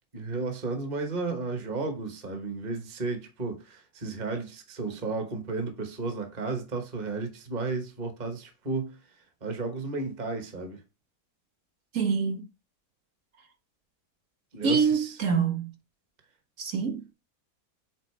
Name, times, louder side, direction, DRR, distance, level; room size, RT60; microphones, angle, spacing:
voice 1, 0.1-9.0 9.4-10.8 14.5-15.2, right 3 dB, 30° right, 1.2 m, -33 dB
voice 2, 11.9-12.5 14.6-15.7 16.6-17.0, right 5 dB, 60° right, 1.4 m, -25 dB
8.0 x 4.0 x 3.2 m
omnidirectional pair, 1.6 m